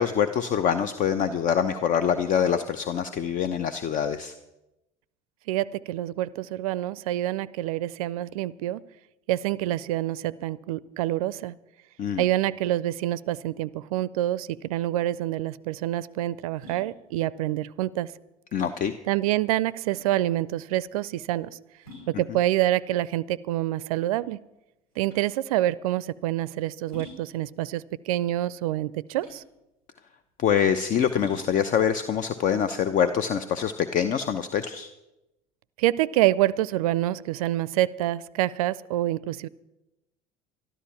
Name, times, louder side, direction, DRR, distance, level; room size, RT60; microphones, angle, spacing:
voice 1, 0.0-4.3 12.0-12.2 18.5-18.9 30.4-34.9, left 8 dB, 45° left, 11 dB, 0.8 m, -25 dB
voice 2, 5.5-8.8 9.3-11.6 12.2-18.1 19.1-21.6 22.1-24.4 25.0-29.4 35.8-39.5, right 14 dB, 70° right, 21 dB, 0.4 m, -27 dB
sound 1, 15.0-33.6, left 2 dB, 85° left, 6.8 m, -51 dB
13.0 x 12.5 x 5.8 m, 0.94 s
hypercardioid pair, 70°, 19 cm